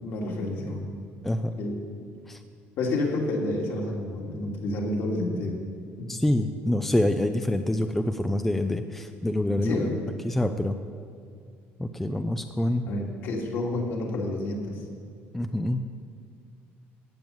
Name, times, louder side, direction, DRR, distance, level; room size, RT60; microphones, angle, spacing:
voice 1, 0.0-0.9 1.6-2.1 2.8-5.6 6.0-6.2 9.5-10.0 12.9-14.9, left 2 dB, 60° left, -1 dB, 2.6 m, -30 dB
voice 2, 1.2-1.6 2.3-2.4 6.1-9.8 10.2-10.8 11.8-12.8 15.3-15.8, left 1 dB, 5° left, 8 dB, 0.4 m, -26 dB
15.5 x 9.2 x 7.2 m, 2.1 s
cardioid pair, 170°, 5 cm